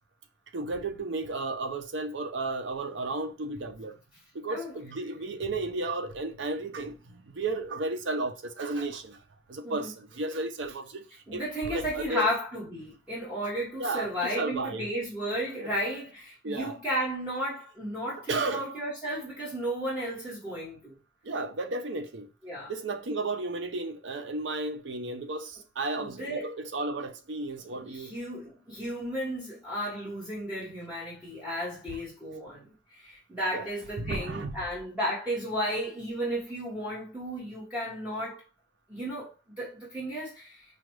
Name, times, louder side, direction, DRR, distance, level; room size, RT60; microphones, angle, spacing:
voice 1, 0.5-4.0 4.3-9.2 9.5-11.0 11.3-12.3 13.8-14.9 15.6-15.7 16.4-16.8 18.3-18.6 21.2-22.3 22.7-28.1 33.5-33.7 34.0-34.5, right 2 dB, 70° right, 0.6 m, -33 dB
voice 2, 11.3-21.0 22.4-22.7 26.0-26.5 27.8-38.4 38.9-40.6, equal, 10° right, 1.4 m, -34 dB
4.8 x 2.3 x 3.1 m
head